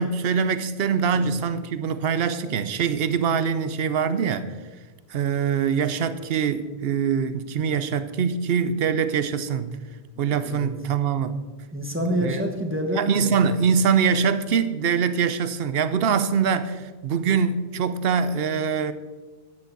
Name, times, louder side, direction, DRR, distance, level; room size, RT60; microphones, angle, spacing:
voice 1, 0.0-4.5 5.1-9.8 10.2-11.4 12.2-12.4 13.0-18.9, right 6 dB, 75° right, 0.9 m, -23 dB
voice 2, 10.3-10.7 11.7-13.5, equal, 10° right, 1.3 m, -28 dB
10.5 x 9.6 x 4.0 m
omnidirectional pair, 1.0 m